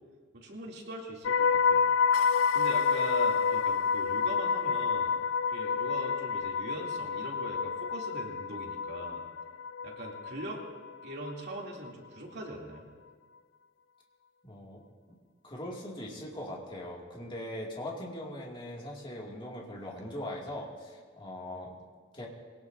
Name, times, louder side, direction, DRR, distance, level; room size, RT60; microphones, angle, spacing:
voice 1, 0.3-1.9 2.5-5.2 5.5-9.2 9.8-10.6 11.0-12.9, right 1 dB, 60° right, -2 dB, 2.7 m, -41 dB
sound 1, 1.2-11.3 11.6-11.9, left 6 dB, 75° left, 0.3 m, -29 dB
voice 2, 14.4-14.8 15.4-21.7 22.1-22.3, left 1 dB, 25° left, -2 dB, 2.2 m, -40 dB
22.0 x 18.0 x 2.6 m, 1.5 s
head